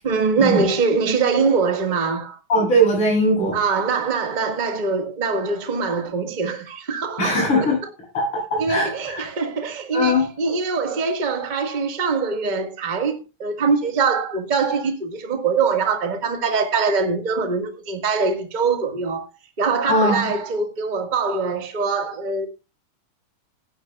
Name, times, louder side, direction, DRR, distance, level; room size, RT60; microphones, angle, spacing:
voice 1, 0.0-2.4 3.5-7.7 8.6-19.2 19.6-22.5, right 4 dB, 25° right, 1.0 m, -23 dB
voice 2, 2.5-3.6 7.2-7.8 8.1-9.3 9.9-10.2 19.9-20.3, equal, 45° left, 8.8 m, -20 dB
17.0 x 11.0 x 2.3 m
omnidirectional pair, 3.6 m